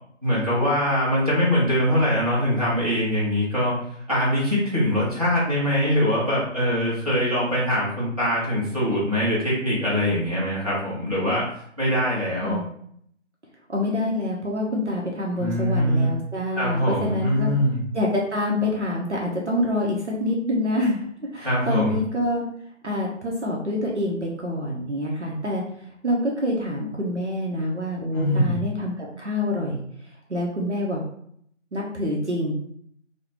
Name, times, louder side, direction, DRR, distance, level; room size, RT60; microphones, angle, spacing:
voice 1, 0.2-3.8 4.1-11.5 11.8-12.6 15.4-16.1 16.5-17.8 21.4-22.0 28.1-28.6, equal, 30° right, -9 dB, 0.9 m, -23 dB
voice 2, 13.7-17.5 17.9-21.1 21.3-22.4 22.8-25.6 26.0-29.8 30.3-31.0 31.7-32.6, left 1 dB, 65° right, -2 dB, 0.7 m, -26 dB
3.1 x 2.0 x 2.9 m, 0.67 s
figure-of-eight pair, 170°, 37 cm